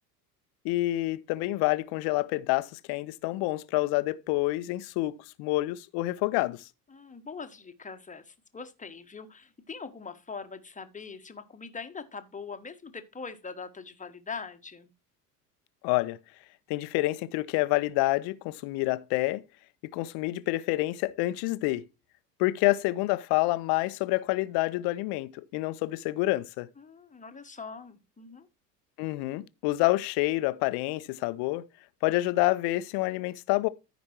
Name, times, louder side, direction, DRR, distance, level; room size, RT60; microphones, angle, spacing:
voice 1, 0.6-6.6 15.8-16.2 16.7-19.4 19.8-21.8 22.4-26.7 29.0-31.7 32.0-33.7, left 19 dB, 55° left, 0.8 m, -28 dB
voice 2, 6.9-14.9 26.8-28.5, left 5 dB, 15° left, 1.3 m, -42 dB
14.0 x 5.2 x 3.0 m
hypercardioid pair, 70°, 48 cm